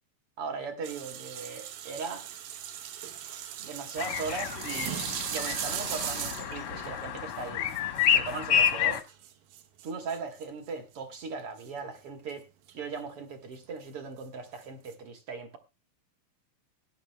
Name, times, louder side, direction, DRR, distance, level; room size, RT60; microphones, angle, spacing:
voice 1, 0.4-2.3 3.2-7.7 8.1-9.0 9.8-12.5 12.7-15.6, right 5 dB, 55° right, 1.6 m, -38 dB
sound 1, 0.8-10.7 11.6-11.7 12.1-12.3 12.7-12.8 13.6-13.7 14.6-14.9, right 10 dB, 75° right, 2.6 m, -38 dB
sound 2, 4.0-9.0, left 8 dB, 70° left, 1.3 m, -29 dB
19.0 x 10.5 x 2.2 m
omnidirectional pair, 4.1 m